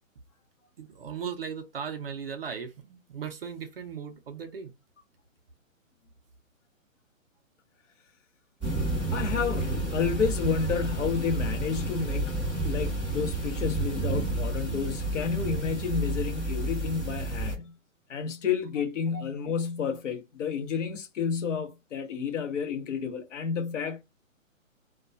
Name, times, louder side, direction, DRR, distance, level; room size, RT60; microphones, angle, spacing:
voice 1, 0.8-4.7, right 7 dB, 45° right, 0.4 m, -37 dB
sound 1, 8.6-17.5, right 2 dB, 5° left, 0.8 m, -30 dB
voice 2, 9.1-12.3 12.6-17.7 18.1-24.0, left 6 dB, 60° left, 0.9 m, -30 dB
2.2 x 2.2 x 2.5 m
hypercardioid pair, 150°, 41 cm